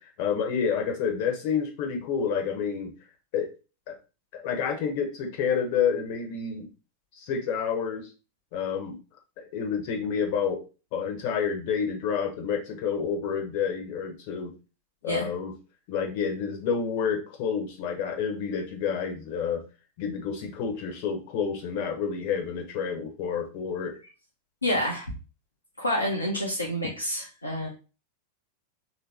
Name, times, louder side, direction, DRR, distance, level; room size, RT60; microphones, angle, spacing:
voice 1, 0.0-2.9 3.3-3.5 3.9-4.0 4.3-6.7 7.1-8.1 8.5-8.9 9.4-10.6 10.9-14.5 15.0-15.5 15.9-19.6 20.0-24.0, left 6 dB, 45° left, 3 dB, 1.1 m, -29 dB
voice 2, 24.6-25.0 25.8-27.7, left 1 dB, 80° left, -3 dB, 0.9 m, -28 dB
3.7 x 3.0 x 3.4 m, 0.32 s
figure-of-eight pair, 90°, 0 cm